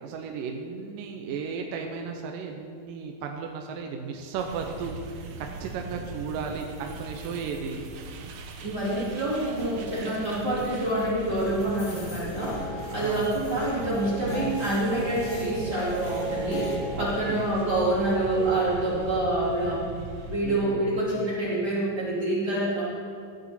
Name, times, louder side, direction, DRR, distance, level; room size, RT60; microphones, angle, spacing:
voice 1, 0.0-7.8 13.0-13.4 17.0-17.5 20.4-21.1, right 5 dB, 80° right, 2 dB, 2.4 m, -35 dB
sound 1, 4.4-20.4, right 4 dB, 65° right, 1.8 m, -40 dB
voice 2, 8.6-19.8 20.3-22.8, right 1 dB, 30° right, -8 dB, 2.9 m, -27 dB
sound 2, 11.7-16.8, equal, 55° left, 3.1 m, -36 dB
16.0 x 10.0 x 4.3 m, 2.3 s
omnidirectional pair, 3.9 m